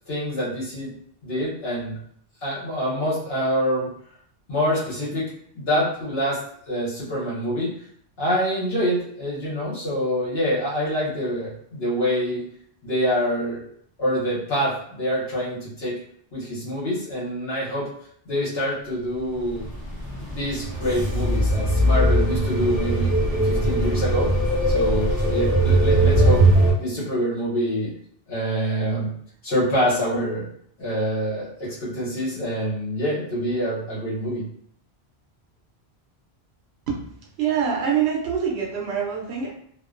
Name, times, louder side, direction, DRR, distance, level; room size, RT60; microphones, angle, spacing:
voice 1, 0.1-0.9 1.2-2.0 2.4-3.9 4.5-5.3 5.5-6.4 6.7-7.7 8.2-12.4 12.8-13.6 14.0-15.9 16.3-17.9 18.3-19.7 20.2-23.1 23.4-24.3 24.7-26.4 26.8-27.9 28.3-29.1 29.4-30.5 30.8-34.4, equal, 70° left, -8 dB, 1.1 m, -25 dB
sound 1, 19.4-26.7, right 1 dB, 20° right, 0.8 m, -20 dB
voice 2, 37.4-39.5, right 7 dB, 80° right, -2 dB, 0.9 m, -24 dB
2.4 x 2.1 x 2.4 m, 0.64 s
omnidirectional pair, 1.1 m